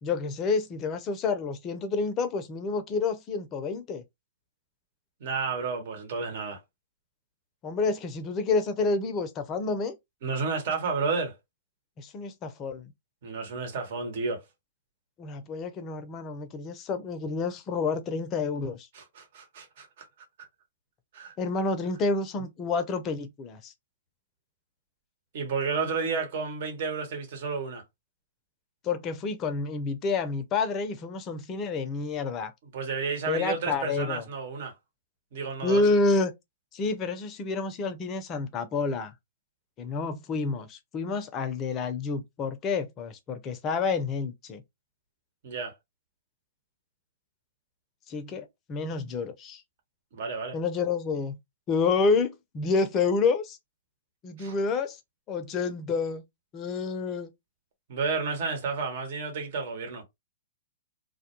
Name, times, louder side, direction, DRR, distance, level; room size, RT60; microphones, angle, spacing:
voice 1, 0.0-4.0 7.6-9.9 12.0-12.9 15.2-18.9 21.4-23.7 28.8-32.5 33.3-34.3 35.6-36.3 36.7-39.1 39.8-44.6 48.1-49.6 50.5-51.4 51.7-53.6 54.2-55.0 55.3-56.2 56.5-57.3, left 4 dB, 30° left, 0.5 m, -29 dB
voice 2, 5.2-6.6 10.2-11.3 13.2-14.4 18.9-20.1 21.1-21.3 25.3-27.8 32.7-34.7 35.3-35.8 45.4-45.7 50.1-50.6 54.4-54.6 57.9-60.0, right 4 dB, 55° right, 1.1 m, -31 dB
2.2 x 2.2 x 2.9 m
hypercardioid pair, 120°, 0 cm